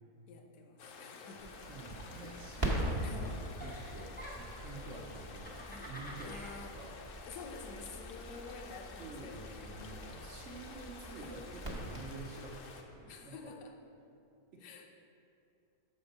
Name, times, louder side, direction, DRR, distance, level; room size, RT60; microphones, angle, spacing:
voice 1, 0.3-1.6 2.3-3.3 5.6-5.9 6.2-6.8 7.3-9.9 11.1-11.5 13.1-13.8 14.6-14.9, left 4 dB, 90° left, 3 dB, 1.3 m, -50 dB
sound 1, 0.8-12.8, left 4 dB, 65° left, 0.8 m, -51 dB
Crackle, 1.4-12.6, right 1 dB, 20° right, 0.8 m, -42 dB
voice 2, 1.6-6.3 6.7-6.9 9.0-12.6 12.9-13.5 14.5-14.6, right 3 dB, 60° right, -1 dB, 0.9 m, -48 dB
Giggle, 2.1-2.9 3.2-4.7 5.2-6.5, equal, 10° left, 0.4 m, -49 dB
6.8 x 4.4 x 5.2 m, 2.6 s
omnidirectional pair, 1.7 m